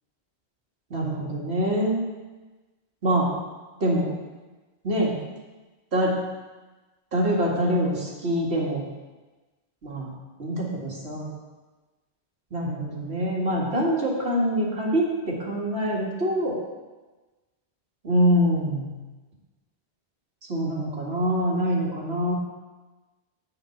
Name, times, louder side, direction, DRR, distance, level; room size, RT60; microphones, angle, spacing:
voice 1, 0.9-2.0 3.0-3.3 3.8-4.1 4.8-5.2 5.9-6.2 7.1-8.8 9.8-10.1 10.4-11.3 12.5-16.6 18.0-18.9 20.5-22.3, equal, 70° right, -4 dB, 2.3 m, -24 dB
7.9 x 5.5 x 7.0 m, 1.2 s
omnidirectional pair, 1.1 m